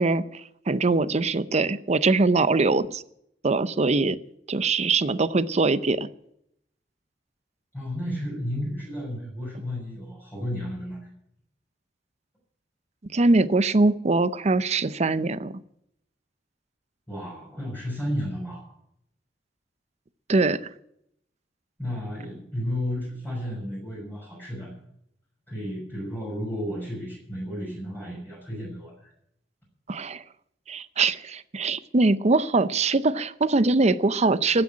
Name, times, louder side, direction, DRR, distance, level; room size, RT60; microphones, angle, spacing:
voice 1, 0.0-3.0 3.4-4.2 4.5-6.1 13.0-15.6 20.3-20.6 29.9-30.2 30.7-34.6, right 3 dB, 40° right, 15 dB, 0.6 m, -22 dB
voice 2, 7.7-11.1 17.1-18.7 21.8-24.7 25.5-29.1, equal, 10° left, -5 dB, 6.2 m, -33 dB
15.0 x 7.9 x 9.8 m, 0.75 s
head